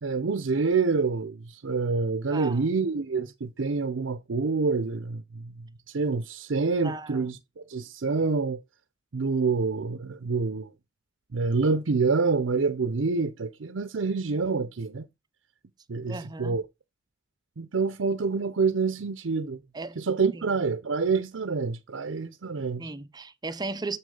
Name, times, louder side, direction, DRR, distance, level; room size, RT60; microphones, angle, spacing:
voice 1, 0.0-5.7 5.9-7.4 7.7-8.6 9.1-10.7 11.3-15.1 15.9-16.6 17.6-19.6 20.0-22.9, right 4 dB, 75° right, 0.6 m, -27 dB
voice 2, 2.3-2.6 6.8-7.3 16.1-16.6 19.7-20.0 20.3-20.4 22.8-24.0, right 3 dB, 20° right, 0.6 m, -36 dB
7.4 x 6.3 x 3.8 m
head